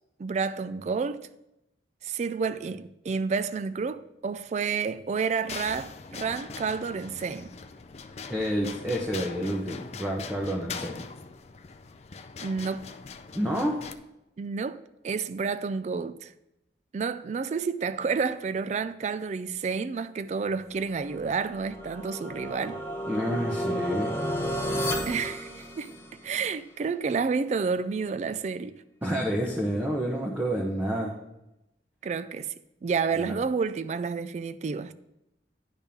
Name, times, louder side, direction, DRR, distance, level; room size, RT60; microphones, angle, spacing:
voice 1, 0.2-1.3 2.0-7.5 12.4-12.9 14.4-16.3 16.9-22.8 25.1-26.0 26.2-28.8 32.0-32.5 32.8-34.9, right 5 dB, 40° right, 0.3 m, -30 dB
sound 1, 5.5-13.9, left 5 dB, 35° left, 0.4 m, -42 dB
voice 2, 8.3-11.1 13.3-13.8 23.1-24.2 25.1-25.2 29.0-31.2 33.2-33.3, equal, 10° right, 0.8 m, -29 dB
sound 2, 21.1-26.3, equal, 15° left, 1.2 m, -32 dB
10.5 x 3.6 x 6.9 m
head